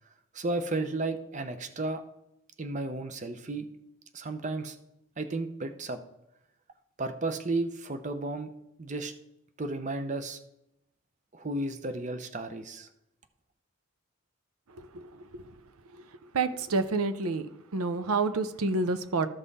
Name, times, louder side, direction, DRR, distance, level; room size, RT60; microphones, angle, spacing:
voice 1, 0.3-2.0 2.6-3.6 4.1-4.8 5.2-6.0 7.0-8.5 8.8-9.1 9.6-10.4 11.3-12.9, right 2 dB, 35° right, 8 dB, 0.7 m, -33 dB
voice 2, 14.8-15.4 16.3-17.5 17.7-19.3, right 3 dB, 85° right, 11 dB, 0.7 m, -29 dB
13.5 x 5.5 x 4.1 m, 0.86 s
head